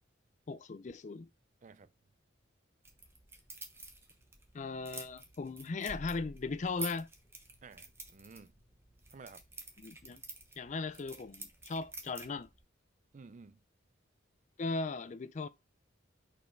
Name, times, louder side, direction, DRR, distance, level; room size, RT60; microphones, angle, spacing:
voice 1, 0.5-1.3 4.5-7.1 9.8-10.2 10.6-12.5 14.6-15.5, left 3 dB, 35° left, 0.4 m, -38 dB
sound 1, 2.8-12.6, right 2 dB, 15° right, 0.9 m, -49 dB
voice 2, 7.6-8.6 9.1-9.4 13.1-13.6, right 4 dB, 40° right, 0.4 m, -53 dB
5.3 x 4.2 x 4.4 m
head